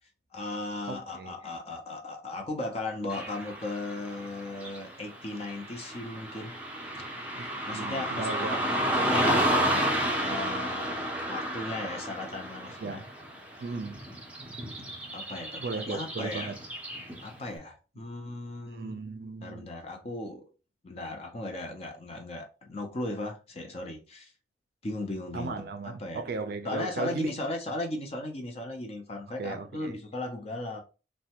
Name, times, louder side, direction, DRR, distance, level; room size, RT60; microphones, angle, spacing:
voice 1, 0.3-6.5 6.9-7.1 7.6-8.6 8.9-9.4 10.2-13.0 13.5-13.6 15.1-16.5 17.2-19.0 19.4-20.4 20.8-24.3 24.8-26.3 26.6-30.8, left 2 dB, 35° left, 0.5 m, -37 dB
voice 2, 0.9-1.3 7.4-7.5 7.7-8.6 12.8-13.0 13.6-14.0 15.6-16.6 18.7-19.7 25.3-27.3 29.4-30.0, right 3 dB, 55° right, 0.4 m, -36 dB
Car passing by / Traffic noise roadway noise, 3.1-17.4, equal, 5° right, 0.6 m, -32 dB
3.2 x 2.1 x 2.8 m
head